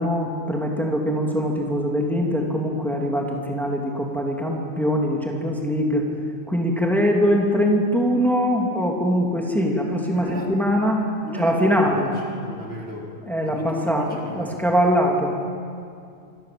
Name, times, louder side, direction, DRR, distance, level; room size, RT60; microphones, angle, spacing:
voice 1, 0.0-6.0 6.5-11.0 11.3-12.2 13.2-15.4, equal, ahead, -1 dB, 3.0 m, -22 dB
voice 2, 10.1-10.5 11.2-13.1 13.4-14.6, equal, 55° right, -2 dB, 4.6 m, -34 dB
26.0 x 25.0 x 7.9 m, 2.4 s
omnidirectional pair, 1.3 m